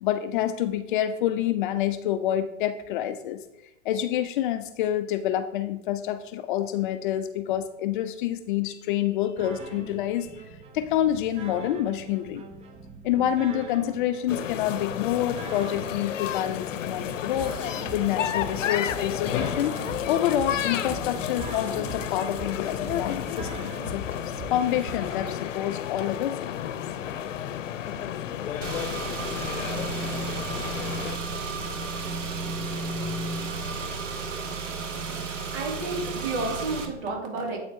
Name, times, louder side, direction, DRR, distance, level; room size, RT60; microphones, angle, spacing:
voice 1, 0.0-3.4 3.8-10.5 10.7-12.4 13.0-17.6 17.9-19.8 20.1-26.8, left 11 dB, 45° left, 11 dB, 0.5 m, -27 dB
sound 1, 9.4-25.4, right 4 dB, 15° right, 0.6 m, -42 dB
sound 2, 14.3-31.2, left 10 dB, 80° left, 0.7 m, -32 dB
Car / Engine, 28.6-36.9, right 3 dB, 85° right, 1.2 m, -32 dB
voice 2, 35.3-37.6, right 3 dB, 60° right, 1 dB, 2.5 m, -31 dB
8.3 x 4.4 x 4.4 m, 0.89 s
hypercardioid pair, 125°, 37 cm